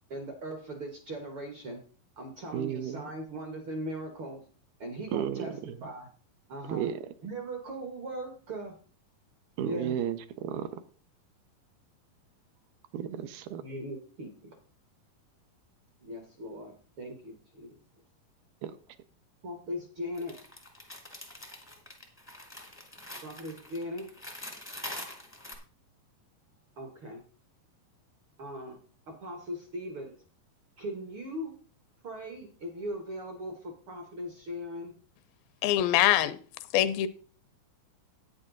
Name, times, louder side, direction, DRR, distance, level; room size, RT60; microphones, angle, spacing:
voice 1, 0.1-1.8 2.2-4.4 4.8-6.1 6.5-6.9 7.2-8.7 9.6-10.0 13.6-14.6 16.0-17.8 19.4-20.4 23.2-24.1 26.8-27.2 28.4-28.8 29.1-30.1 30.8-31.5 32.0-34.9, equal, 60° right, 1.3 m, -39 dB
voice 2, 2.5-3.0 5.1-5.7 6.7-7.0 9.6-10.7 12.9-13.6 18.6-18.7, right 9 dB, 85° right, 2.6 m, -33 dB
sound 1, 20.1-25.5, left 1 dB, 10° left, 0.5 m, -44 dB
voice 3, 35.6-36.4 36.7-37.1, left 12 dB, 80° left, 2.3 m, -23 dB
9.7 x 9.2 x 3.9 m
omnidirectional pair, 4.3 m